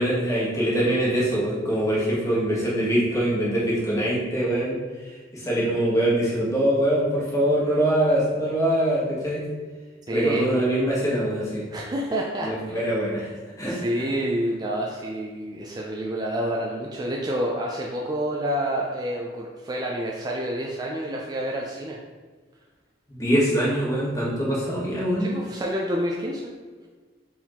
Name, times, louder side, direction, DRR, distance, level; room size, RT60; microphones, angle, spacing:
voice 1, 0.0-4.8 5.3-9.4 10.1-11.6 12.4-13.3 13.6-13.8 23.1-25.4, right 1 dB, 20° left, -6 dB, 1.2 m, -23 dB
voice 2, 10.1-10.5 11.7-12.9 13.6-22.0 25.2-26.5, equal, 20° right, -2 dB, 0.3 m, -28 dB
4.5 x 3.6 x 2.9 m, 1.4 s
head